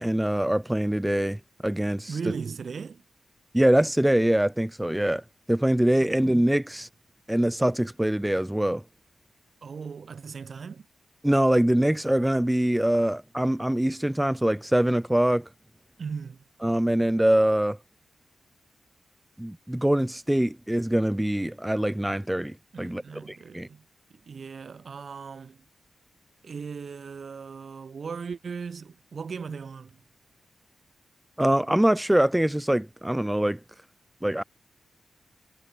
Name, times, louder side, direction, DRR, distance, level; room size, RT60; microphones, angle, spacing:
voice 1, 0.0-2.1 3.5-5.2 5.5-6.9 7.3-8.8 11.2-15.5 16.6-17.8 19.4-23.0 23.3-23.7 31.4-33.6 34.2-34.4, right 1 dB, 5° right, 0.7 m, -23 dB
voice 2, 2.1-3.0 6.0-6.2 9.6-10.9 16.0-16.4 22.7-25.7 26.4-30.0, right 5 dB, 55° right, 1.2 m, -38 dB
cardioid pair, 90°, 0 cm